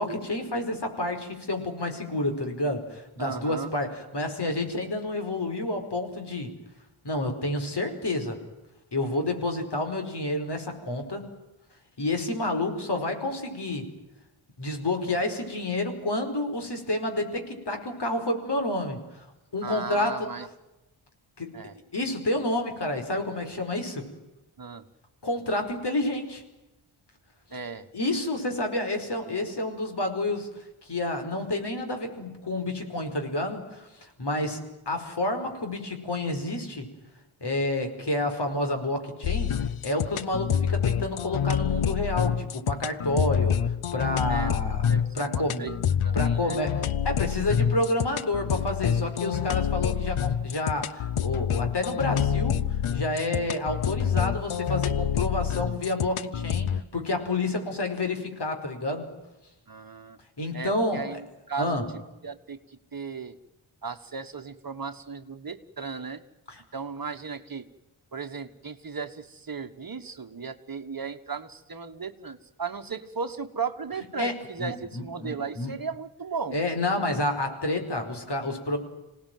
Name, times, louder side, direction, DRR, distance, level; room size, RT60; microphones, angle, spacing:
voice 1, 0.0-6.5 7.0-8.4 8.9-11.2 12.0-13.9 14.6-19.2 19.5-20.3 21.4-21.5 21.9-24.1 25.2-26.4 27.9-30.5 30.8-36.9 37.4-44.9 45.1-45.7 46.1-52.6 52.9-59.1 60.4-61.2 61.6-61.8 66.5-66.6 74.2-75.7 76.5-78.8, left 2 dB, 50° left, 5 dB, 5.1 m, -29 dB
voice 2, 3.2-3.7 19.6-20.5 21.5-21.7 24.6-24.8 27.5-27.9 44.3-44.5 44.9-45.8 46.0-46.6 59.7-60.2 60.5-61.8 62.2-62.6 62.9-63.4 63.8-66.2 66.7-67.7 68.1-76.6, right 5 dB, 45° right, 8 dB, 1.4 m, -36 dB
sound 1, 39.2-56.8, left 8 dB, 75° left, 0.9 m, -27 dB
26.5 x 18.5 x 9.3 m, 1.0 s
wide cardioid pair, 115°, 50 cm